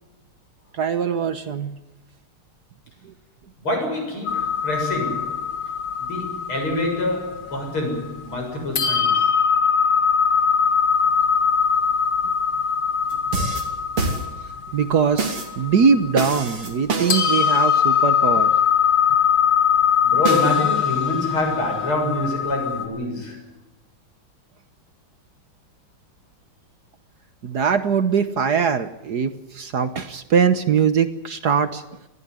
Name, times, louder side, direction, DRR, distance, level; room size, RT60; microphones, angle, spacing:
voice 1, 0.7-1.8 3.0-3.1 14.7-18.5 27.4-31.8, right 6 dB, 55° right, 1.4 m, -21 dB
voice 2, 3.6-5.5 6.0-9.3 20.0-23.5, left 1 dB, 75° left, 8.0 m, -26 dB
sound 1, 4.3-8.3 8.8-16.9 17.1-22.9, left 7 dB, 90° left, 3.0 m, -22 dB
sound 2, 13.1-14.7 15.2-15.6 16.2-18.0 20.2-21.9, right 4 dB, 80° right, 4.0 m, -28 dB
21.0 x 15.5 x 9.8 m
omnidirectional pair, 2.4 m